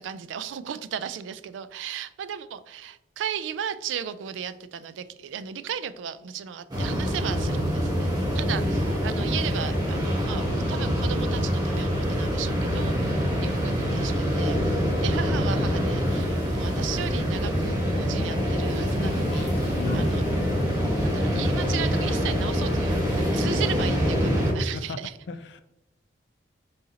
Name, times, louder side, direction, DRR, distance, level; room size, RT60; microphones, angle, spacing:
voice 1, 0.0-20.2 21.0-25.1, right 8 dB, 80° right, 13 dB, 0.3 m, -35 dB
sound 1, 6.7-24.5, equal, 20° right, 1.0 m, -25 dB
sound 2, 19.0-24.0, left 1 dB, 50° left, 0.8 m, -42 dB
voice 2, 19.7-20.1 24.6-25.0 25.3-25.6, left 4 dB, 65° left, 11 dB, 0.4 m, -36 dB
4.2 x 3.7 x 2.7 m, 0.90 s
head